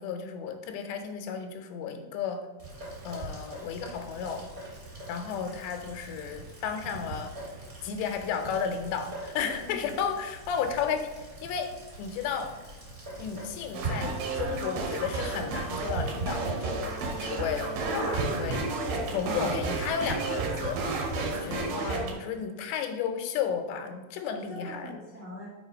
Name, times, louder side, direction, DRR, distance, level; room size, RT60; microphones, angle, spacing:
voice 1, 0.0-2.4 3.0-4.5 5.1-7.3 7.8-11.1 11.4-12.5 13.2-18.6 19.0-25.0, left 7 dB, 85° left, 6 dB, 3.0 m, -33 dB
Rain, 2.6-21.7, right 2 dB, 25° right, 2.1 m, -41 dB
voice 2, 9.6-10.0 18.5-19.3 24.3-25.5, equal, 85° right, -8 dB, 0.6 m, -42 dB
sound 1, 13.7-22.1, right 3 dB, 70° right, 2.3 m, -32 dB
5.9 x 4.9 x 5.1 m, 1.3 s
omnidirectional pair, 4.9 m